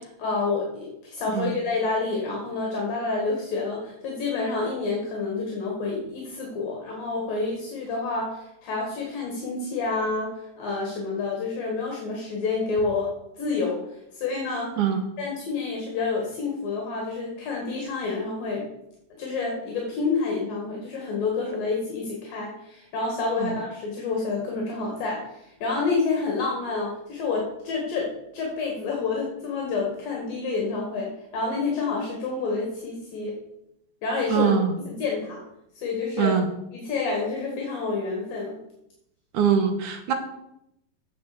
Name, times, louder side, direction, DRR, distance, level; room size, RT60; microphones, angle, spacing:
voice 1, 0.0-13.1 13.4-13.8 14.1-14.9 15.2-18.7 19.2-33.4 34.0-35.4 35.8-36.4 36.7-38.6, left 4 dB, 65° left, -1 dB, 3.5 m, -28 dB
voice 2, 34.3-34.7 36.2-36.5 39.3-40.1, right 7 dB, 65° right, 6 dB, 2.3 m, -22 dB
9.4 x 6.9 x 6.7 m, 0.82 s
omnidirectional pair, 4.4 m